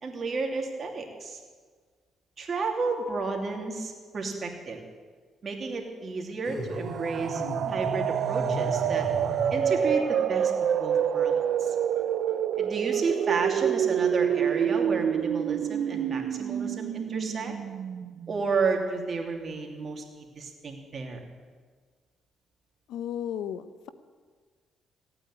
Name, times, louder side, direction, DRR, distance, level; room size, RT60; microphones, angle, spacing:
voice 1, 0.0-1.4 2.4-4.8 5.4-7.4 7.7-9.1 9.5-11.7 12.6-17.5 18.3-21.2, right 4 dB, 45° right, 2 dB, 2.9 m, -32 dB
sound 1, 6.4-9.9, equal, 25° left, 6.8 m, -35 dB
sound 2, 6.7-18.4, right 9 dB, 70° right, 0.6 m, -27 dB
voice 2, 22.9-23.9, left 9 dB, 85° left, 13 dB, 0.8 m, -34 dB
16.0 x 8.9 x 9.8 m, 1.5 s
cardioid pair, 90°, 0 cm